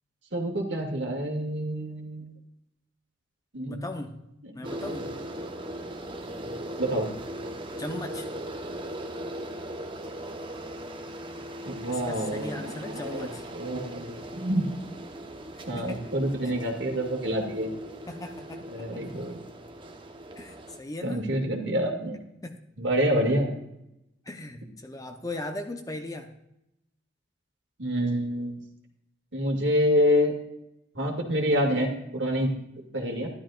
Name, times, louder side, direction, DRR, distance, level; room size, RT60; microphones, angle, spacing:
voice 1, 0.3-2.3 3.5-3.8 4.4-5.2 6.4-7.1 11.7-13.3 13.5-14.7 15.7-17.7 18.7-19.4 21.0-22.2 22.8-23.5 27.8-28.5 29.3-30.3 30.9-32.6 32.9-33.3, equal, 70° right, 1 dB, 2.2 m, -27 dB
voice 2, 3.7-4.1 4.5-5.1 7.8-8.3 11.9-13.4 15.5-16.0 18.1-19.0 20.4-21.3 22.4-22.6 24.2-26.3, left 1 dB, 20° left, 5 dB, 0.9 m, -38 dB
sound 1, 4.6-20.8, right 1 dB, 25° right, 1.0 m, -39 dB
13.0 x 12.0 x 2.5 m, 0.84 s
head